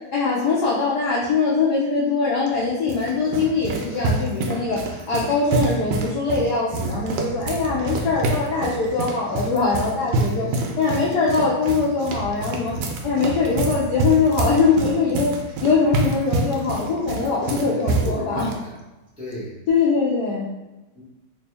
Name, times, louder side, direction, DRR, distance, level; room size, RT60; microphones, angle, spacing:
voice 1, 0.1-10.5 10.8-12.7 13.0-15.3 15.6-18.5 19.7-20.5, left 4 dB, 75° left, -5 dB, 0.9 m, -22 dB
sound 1, 2.5-18.6, right 3 dB, 75° right, 1.0 m, -27 dB
voice 2, 10.3-10.9 17.3-18.7 19.2-19.6 20.9-21.0, equal, 5° right, -9 dB, 0.6 m, -35 dB
3.1 x 2.9 x 3.3 m, 1.1 s
omnidirectional pair, 2.3 m